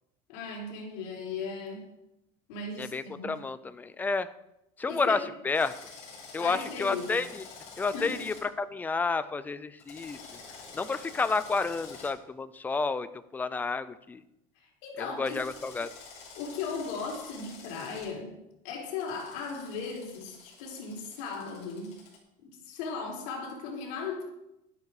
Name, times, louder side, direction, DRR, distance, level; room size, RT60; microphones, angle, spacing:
voice 1, 0.3-1.9 2.5-3.3 4.9-5.3 6.4-7.1 7.9-8.2 14.6-15.4 16.4-18.4 18.6-22.0 22.4-24.2, left 4 dB, 70° left, -1 dB, 3.9 m, -37 dB
voice 2, 2.8-4.3 4.8-5.2 5.4-5.7 6.3-7.4 7.8-10.2 10.7-13.1 13.3-14.2 15.2-15.9, left 4 dB, 10° left, 14 dB, 0.4 m, -30 dB
Drill, 5.5-8.4 9.8-12.1 15.2-18.1 19.0-22.2, left 4 dB, 45° left, 5.5 m, -48 dB
12.0 x 11.5 x 4.8 m, 0.86 s
cardioid pair, 165°, 16 cm